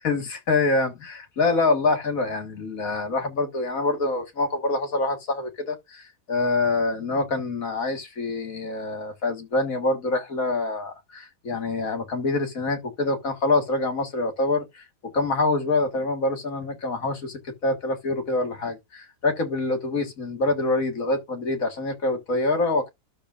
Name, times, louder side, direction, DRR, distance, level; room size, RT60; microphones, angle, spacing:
voice 1, 0.0-22.9, left 3 dB, 55° left, 2.1 m, -25 dB
12.0 x 6.6 x 2.5 m
omnidirectional pair, 1.8 m